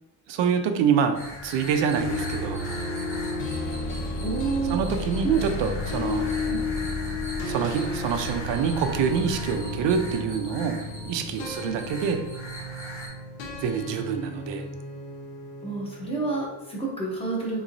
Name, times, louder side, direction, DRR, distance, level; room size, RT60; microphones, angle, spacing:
voice 1, 0.3-2.9 4.7-6.3 7.5-10.8 11.1-12.2 13.6-14.6, right 7 dB, 80° right, 6 dB, 0.5 m, -26 dB
sound 1, 1.1-13.1, left 1 dB, 30° left, 1.2 m, -41 dB
sound 2, 1.9-16.9, left 2 dB, 85° left, 0.7 m, -33 dB
voice 2, 4.2-4.9 5.2-5.4 6.5-6.6 11.6-11.8 15.6-17.6, right 5 dB, 15° left, -4 dB, 0.7 m, -28 dB
3.6 x 3.0 x 2.5 m, 0.93 s
cardioid pair, 170°, 43 cm